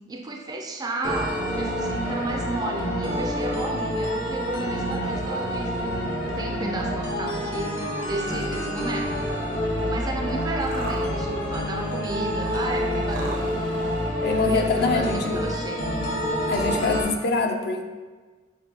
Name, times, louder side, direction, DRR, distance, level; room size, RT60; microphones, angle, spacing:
voice 1, 0.1-6.0 6.2-7.8 8.0-9.2 9.9-13.8 14.5-15.9, right 2 dB, 20° right, 2 dB, 0.3 m, -33 dB
sound 1, 1.0-17.0, equal, 75° left, 0.8 m, -27 dB
sound 2, 10.3-16.3, right 2 dB, 80° right, 0.7 m, -41 dB
voice 2, 14.2-15.4 16.5-17.8, left 3 dB, 55° left, 4 dB, 0.4 m, -24 dB
6.3 x 2.2 x 2.7 m, 1.4 s
head